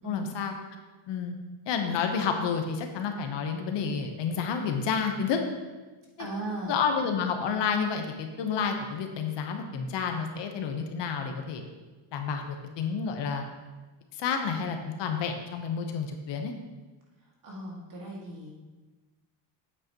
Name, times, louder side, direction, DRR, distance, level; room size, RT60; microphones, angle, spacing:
voice 1, 0.0-0.5 1.1-1.3 1.7-5.4 6.2-6.3 6.7-11.6 12.1-13.4 14.1-16.5, left 6 dB, 60° left, 4 dB, 1.0 m, -30 dB
voice 2, 6.2-6.8 17.2-18.5, right 1 dB, 40° right, -3 dB, 2.1 m, -37 dB
8.6 x 8.0 x 3.0 m, 1.2 s
cardioid pair, 160°, 48 cm